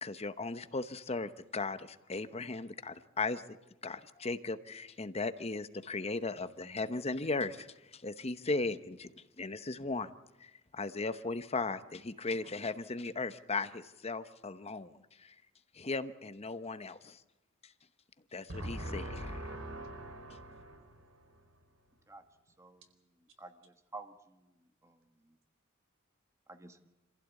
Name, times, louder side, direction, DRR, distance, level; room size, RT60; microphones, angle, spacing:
voice 1, 0.0-3.4 3.8-9.1 9.4-10.1 10.4-14.9 15.2-15.3 15.7-17.2 18.3-19.0, left 3 dB, 30° left, 11 dB, 0.9 m, -37 dB
voice 2, 18.5-21.7, right 1 dB, 85° right, 6 dB, 4.3 m, -43 dB
voice 3, 22.6-22.9 23.4-24.4 24.8-25.0 25.2-25.3 26.5-26.8, right 3 dB, 15° right, 7 dB, 1.5 m, -50 dB
26.5 x 15.5 x 8.3 m, 1.0 s
head